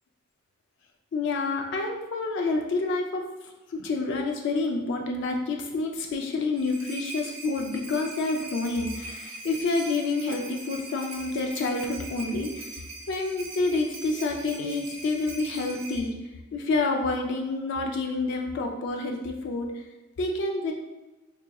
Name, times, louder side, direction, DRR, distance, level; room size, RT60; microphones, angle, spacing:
voice 1, 1.1-3.3 3.7-16.1 16.5-19.8 20.2-20.7, left 3 dB, 60° left, 2 dB, 0.4 m, -28 dB
sound 1, 6.3-16.0, right 2 dB, 70° right, 0.9 m, -41 dB
4.6 x 2.8 x 2.2 m, 1.1 s
head